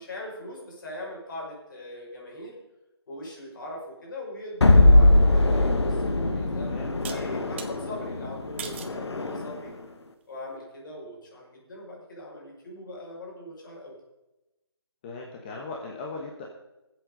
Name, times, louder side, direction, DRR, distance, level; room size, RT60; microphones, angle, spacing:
voice 1, 0.0-2.6 3.1-6.7 7.1-9.7 10.3-14.0, left 1 dB, 50° left, -2 dB, 5.6 m, -41 dB
sound 1, 4.6-9.7, left 2 dB, 85° left, 1.5 m, -21 dB
voice 2, 6.4-7.2 7.8-8.1 15.0-16.5, left 3 dB, 25° left, -1 dB, 1.4 m, -39 dB
sound 2, 7.0-7.7 8.6-9.0 9.6-10.0, right 7 dB, 25° right, 1.0 m, -40 dB
18.5 x 8.1 x 5.1 m, 0.98 s
hypercardioid pair, 165°, 14 cm